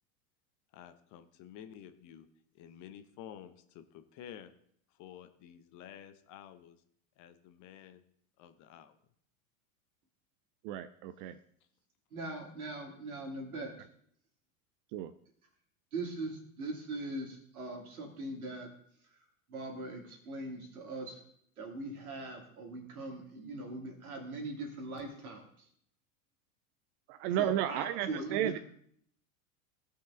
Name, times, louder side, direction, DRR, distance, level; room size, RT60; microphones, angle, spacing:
voice 1, 0.7-2.3 2.5-4.5 4.9-6.8 7.2-8.0 8.4-9.0, left 9 dB, 45° left, 10 dB, 1.0 m, -51 dB
voice 2, 10.6-11.4 14.9-15.1 27.1-28.5, right 11 dB, 50° right, 11 dB, 0.5 m, -33 dB
voice 3, 12.1-13.7 15.9-18.7 19.1-19.2 19.5-21.2 21.6-25.7 27.4-28.6, right 2 dB, 85° right, 0 dB, 2.8 m, -41 dB
16.5 x 5.7 x 3.7 m, 0.65 s
hypercardioid pair, 95°, 42 cm